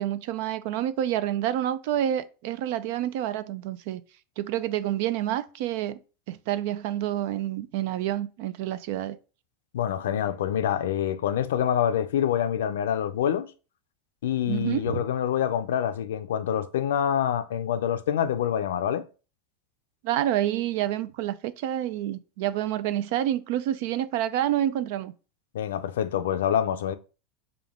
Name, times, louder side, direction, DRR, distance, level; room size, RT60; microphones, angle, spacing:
voice 1, 0.0-4.0 4.4-6.0 6.3-9.2 14.5-15.1 20.0-25.1, right 12 dB, 65° right, 0.4 m, -28 dB
voice 2, 9.7-13.5 14.2-19.0 25.5-26.9, left 9 dB, 85° left, 0.4 m, -26 dB
5.1 x 2.3 x 3.5 m
supercardioid pair, 120°, 0 cm